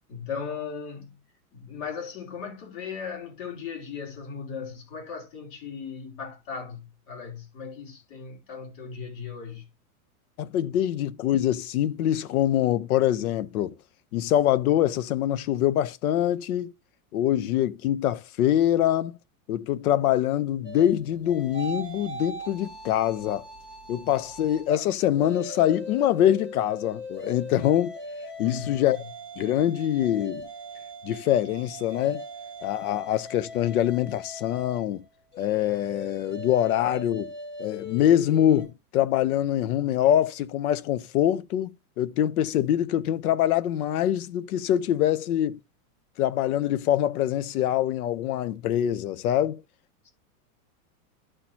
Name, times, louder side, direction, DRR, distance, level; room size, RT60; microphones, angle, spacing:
voice 1, 0.1-1.1 1.5-9.6 28.4-28.8, left 6 dB, 40° left, 2.9 m, -37 dB
voice 2, 10.4-13.8 14.1-16.7 17.1-19.2 19.5-23.4 23.9-28.0 28.4-29.0 29.4-30.4 31.0-32.2 32.6-35.0 35.4-37.3 37.6-45.6 46.2-49.6, left 11 dB, 70° left, 0.9 m, -24 dB
sound 1, 20.6-24.7 25.1-38.7, left 1 dB, 25° left, 2.2 m, -40 dB
13.0 x 4.5 x 2.8 m
supercardioid pair, 155°, 45 cm